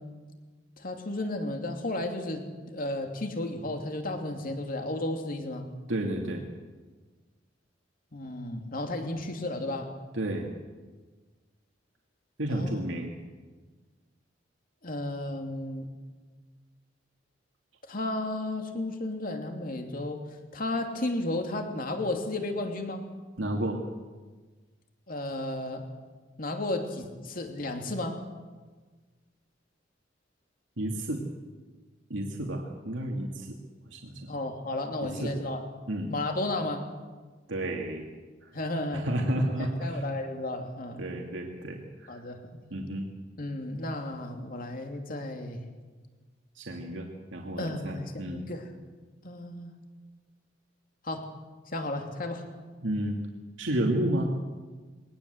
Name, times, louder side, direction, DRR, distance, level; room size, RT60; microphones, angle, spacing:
voice 1, 0.8-5.7 8.1-9.9 12.5-12.8 14.8-15.9 17.9-20.2 20.5-23.0 25.1-25.9 26.4-28.2 34.3-35.6 36.1-36.9 38.5-39.1 39.8-41.0 42.1-42.7 43.4-45.6 47.6-48.7 49.2-49.7 51.0-51.3 51.7-52.5, left 2 dB, 50° left, 4 dB, 2.9 m, -33 dB
voice 2, 5.9-6.4 10.1-10.5 12.4-13.1 23.4-23.8 30.8-31.2 32.1-33.6 33.9-34.3 35.0-35.4 35.9-36.1 37.5-38.0 38.4-38.5 38.9-40.0 41.0-42.2 42.7-43.1 46.6-48.4 52.8-53.2 53.6-54.4, right 1 dB, 90° right, 1 dB, 2.5 m, -31 dB
22.5 x 19.0 x 8.0 m, 1.4 s
head